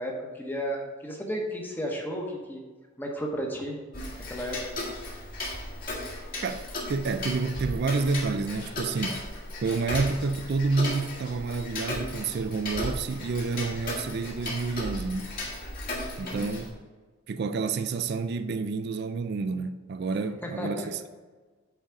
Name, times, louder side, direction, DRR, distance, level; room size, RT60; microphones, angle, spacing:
voice 1, 0.0-2.6 3.0-3.8 4.3-4.8 16.2-16.6 20.6-20.9, equal, 10° left, 1.0 m, -33 dB
Tick-tock, 3.9-16.7, left 1 dB, 45° left, 1.7 m, -36 dB
voice 2, 6.4-9.2 9.6-15.4 16.2-16.8 17.3-21.1, right 4 dB, 50° right, 0.4 m, -29 dB
8.1 x 3.9 x 4.7 m
head